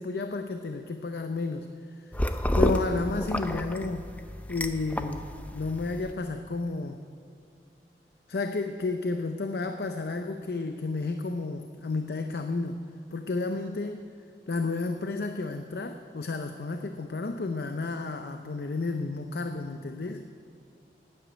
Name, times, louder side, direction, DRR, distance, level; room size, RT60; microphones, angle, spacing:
voice 1, 0.0-1.7 2.2-4.1 4.5-7.0 8.3-12.8 13.1-14.0 14.5-20.2, left 3 dB, 65° left, 7 dB, 0.6 m, -32 dB
sound 1, 2.1-6.1, left 1 dB, 10° left, 0.5 m, -30 dB
12.0 x 9.4 x 9.1 m, 2.4 s
head